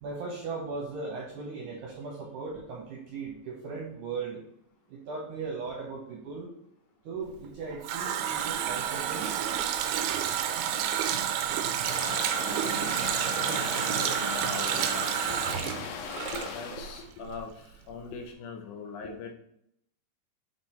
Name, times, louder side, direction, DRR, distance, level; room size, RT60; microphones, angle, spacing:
voice 1, 0.0-4.4 4.9-6.5 7.0-9.3, right 4 dB, 70° right, -1 dB, 1.9 m, -38 dB
Water tap faucet, 7.4-17.0 17.3-17.4, right 9 dB, 90° right, 2.8 m, -30 dB
sound 1, 11.8-17.1, left 7 dB, 90° left, 2.8 m, -38 dB
voice 2, 13.0-15.6 16.3-19.3, left 4 dB, 70° left, 2 dB, 1.9 m, -41 dB
8.2 x 3.4 x 4.4 m, 0.72 s
omnidirectional pair, 4.8 m